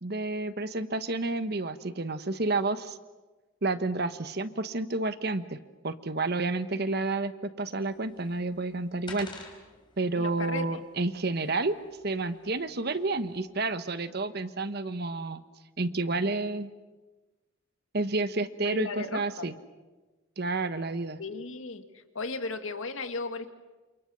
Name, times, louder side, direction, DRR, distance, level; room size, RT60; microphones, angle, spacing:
voice 1, 0.0-3.0 3.6-5.6 5.8-9.3 10.0-11.7 12.0-15.4 15.8-16.7 17.9-19.5 20.4-21.2, right 3 dB, 50° right, 11 dB, 1.2 m, -30 dB
sound 1, 7.9-13.4, left 3 dB, 25° left, 4.4 m, -51 dB
voice 2, 10.1-10.8 18.6-19.5 21.2-21.8 22.1-23.5, left 3 dB, 85° left, 7 dB, 2.0 m, -35 dB
29.0 x 28.0 x 6.4 m, 1.2 s
head